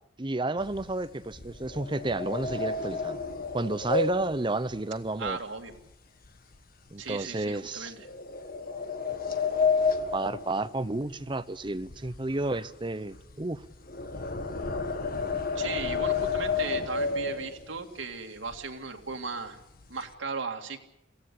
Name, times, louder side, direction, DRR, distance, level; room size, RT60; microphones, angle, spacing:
voice 1, 0.2-3.2 3.5-5.4 6.9-7.9 10.1-13.6, right 2 dB, 25° right, 13 dB, 0.7 m, -31 dB
sound 1, 0.6-5.9 6.2-6.6 7.1-7.2 8.0-11.4 11.6-17.9 18.5-18.6 18.9-19.1 19.5-20.1, left 4 dB, 50° left, 1.5 m, -31 dB
voice 2, 5.2-5.7 7.0-8.1 15.5-19.6 19.9-20.8, right 4 dB, 85° right, 4 dB, 2.3 m, -37 dB
22.5 x 16.5 x 8.4 m, 0.80 s
head